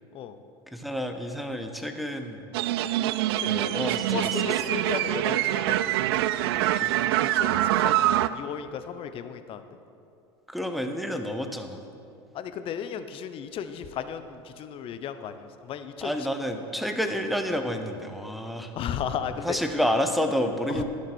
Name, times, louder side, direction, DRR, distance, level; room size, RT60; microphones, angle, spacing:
voice 1, 0.7-2.5 3.4-4.7 6.5-7.0 10.5-11.8 16.0-18.7 19.4-20.8, equal, ahead, 5 dB, 1.0 m, -30 dB
sound 1, 2.5-8.3, right 14 dB, 75° right, 0.4 m, -25 dB
voice 2, 3.4-6.0 7.2-9.8 12.3-16.3 18.7-19.6 20.7-20.8, left 8 dB, 45° left, 10 dB, 0.7 m, -35 dB
11.0 x 7.4 x 6.3 m, 2.5 s
hypercardioid pair, 90°, 13 cm